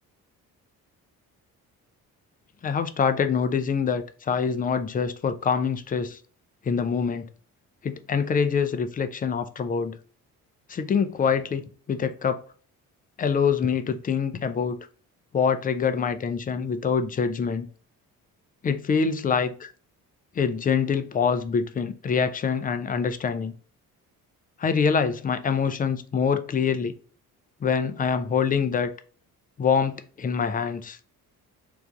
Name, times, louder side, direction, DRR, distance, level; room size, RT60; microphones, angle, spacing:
voice 1, 2.6-6.2 6.6-7.3 7.8-10.0 10.7-12.4 13.2-14.8 15.3-17.7 18.6-19.7 20.4-23.5 24.6-26.9 27.6-28.9 29.6-31.0, left 6 dB, 20° left, 0.3 m, -25 dB
3.2 x 2.5 x 3.5 m
hypercardioid pair, 45°, 46 cm